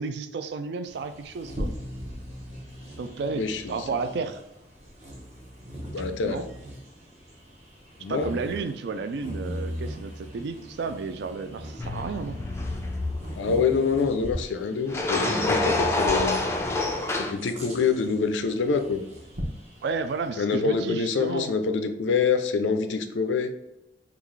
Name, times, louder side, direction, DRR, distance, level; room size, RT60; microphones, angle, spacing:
voice 1, 0.0-1.7 3.0-4.4 6.2-6.5 8.1-12.4 13.5-13.7 19.8-21.5, right 4 dB, 65° right, 9 dB, 0.3 m, -32 dB
Bird vocalization bird call bird song, 0.8-20.3, equal, 35° right, 0.7 m, -40 dB
voice 2, 3.3-3.9 5.9-6.5 8.0-8.3 13.4-16.4 17.2-19.0 20.4-23.5, left 5 dB, 80° left, 7 dB, 0.4 m, -26 dB
sound 1, 11.8-13.5 14.9-17.3, left 2 dB, 15° left, 0.3 m, -27 dB
3.7 x 2.4 x 3.2 m, 0.90 s
head